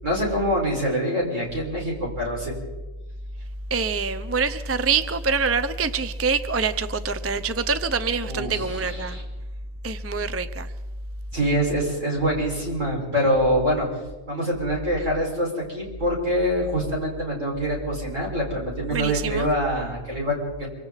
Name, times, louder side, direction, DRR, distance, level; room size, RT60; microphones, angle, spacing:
voice 1, 0.0-2.5 8.2-9.2 11.3-13.9 14.3-20.7, equal, 70° right, 6.0 m, -25 dB
voice 2, 3.7-9.2 9.8-10.7 18.9-19.5, right 4 dB, 15° right, 0.5 m, -25 dB
25.5 x 25.0 x 4.1 m
omnidirectional pair, 1.3 m